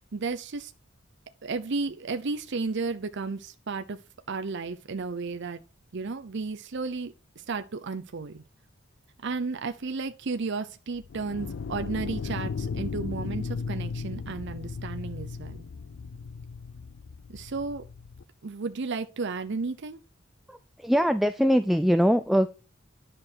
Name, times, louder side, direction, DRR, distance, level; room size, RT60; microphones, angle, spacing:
voice 1, 0.1-0.7 1.4-4.0 4.3-5.6 5.9-8.4 9.2-15.6 17.3-17.8 18.4-20.0, right 4 dB, 60° right, 0.6 m, -33 dB
sound 1, 11.0-18.2, left 5 dB, 60° left, 0.4 m, -36 dB
voice 2, 20.5-22.5, equal, ahead, 0.4 m, -22 dB
9.9 x 6.1 x 4.6 m
head